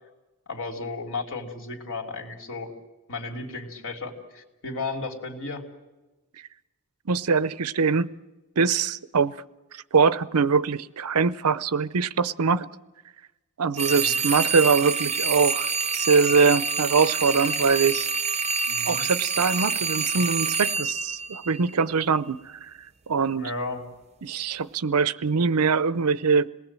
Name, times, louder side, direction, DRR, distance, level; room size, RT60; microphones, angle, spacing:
voice 1, 0.5-2.7 3.1-5.6 13.9-14.2 18.7-19.0 23.3-23.8, left 3 dB, 60° left, 3.2 m, -34 dB
voice 2, 7.1-8.1 8.6-9.3 9.7-12.7 13.6-15.7 15.9-18.1 18.8-22.7 23.1-23.5 24.2-26.5, right 5 dB, 85° right, 0.7 m, -23 dB
sound 1, 13.8-22.0, right 5 dB, 30° right, 0.7 m, -27 dB
27.5 x 19.5 x 7.5 m
head